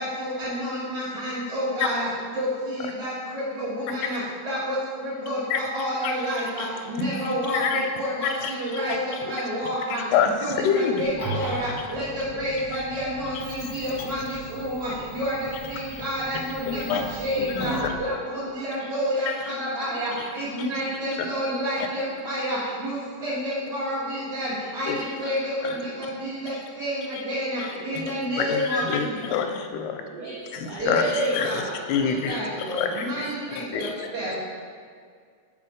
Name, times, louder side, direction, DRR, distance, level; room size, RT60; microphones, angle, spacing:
voice 1, 0.0-2.1 2.3-10.0 10.4-29.4 30.8-34.4, equal, 60° right, -11 dB, 0.9 m, -29 dB
voice 2, 3.9-4.2 5.5-5.6 6.0-6.2 6.6-6.7 7.0-7.9 8.2-8.8 9.1-9.3 9.9-11.0 11.3-11.7 12.7-12.8 13.4-13.5 15.9-16.0 16.7-17.1 17.4-17.9 19.3-19.4 20.2-20.3 20.6-20.7 21.8-21.9 24.8-25.0 25.6-25.8 26.5-26.6 27.1-27.2 27.6-30.0 30.9-32.4 32.7-33.9, left 6 dB, 85° left, 5 dB, 2.5 m, -28 dB
sound 1, 11.0-18.0, equal, 65° left, 0.9 m, -37 dB
voice 3, 18.1-18.9 19.9-20.0 20.9-21.0 21.3-21.6 25.0-25.3 25.6-26.0 27.8-28.1 30.1-31.4 33.4-33.9, right 1 dB, 80° right, -9 dB, 1.3 m, -42 dB
5.7 x 4.2 x 5.0 m, 2.1 s
omnidirectional pair, 4.5 m